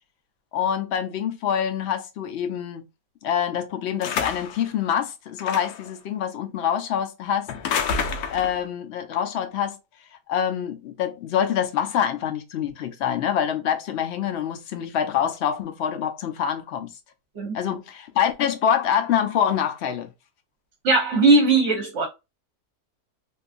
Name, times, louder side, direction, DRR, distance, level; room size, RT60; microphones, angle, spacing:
voice 1, 0.5-2.8 3.2-7.5 8.3-9.8 10.3-16.9 17.5-20.1, left 9 dB, 70° left, 0.6 m, -25 dB
sound 1, 4.0-4.6 5.4-5.9 7.5-8.6, left 6 dB, 85° left, 1.1 m, -28 dB
voice 2, 20.8-22.1, right 3 dB, 60° right, 1.0 m, -18 dB
3.6 x 2.4 x 2.4 m
omnidirectional pair, 1.6 m